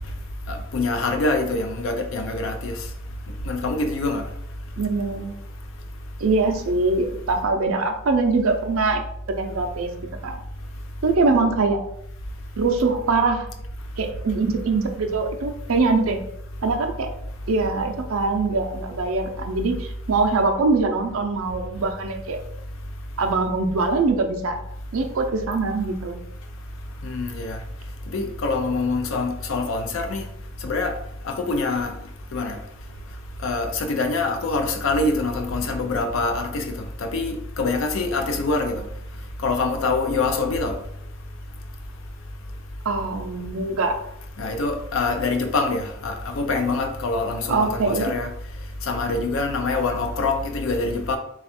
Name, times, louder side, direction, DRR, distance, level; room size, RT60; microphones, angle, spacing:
voice 1, 0.5-2.7 3.5-4.2 27.0-27.6 28.1-30.3 30.6-30.9 31.2-31.9 32.3-32.6 33.4-36.7 37.0-38.8 39.4-40.8 44.4-48.3 48.8-51.2, left 3 dB, 65° left, 5 dB, 0.5 m, -25 dB
voice 2, 4.8-5.3 6.2-9.0 9.4-9.9 10.2-10.4 11.0-11.8 12.6-13.5 14.0-16.2 16.6-17.1 17.5-22.4 23.2-24.6 24.9-26.2 42.8-44.0 47.5-48.1, right 3 dB, 70° right, 5 dB, 0.5 m, -23 dB
3.3 x 2.4 x 4.2 m, 0.75 s
head